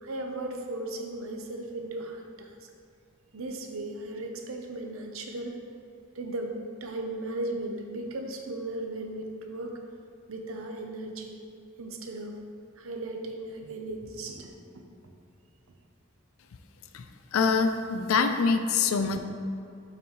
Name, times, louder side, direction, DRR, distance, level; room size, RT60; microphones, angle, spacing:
voice 1, 0.0-2.7 3.3-5.6 6.1-9.7 10.3-11.4 11.8-12.4 12.8-14.8 18.9-19.1, right 2 dB, 80° right, 3 dB, 0.7 m, -36 dB
voice 2, 17.3-19.2, left 5 dB, 75° left, 7 dB, 0.4 m, -24 dB
6.9 x 5.5 x 3.1 m, 2.5 s
head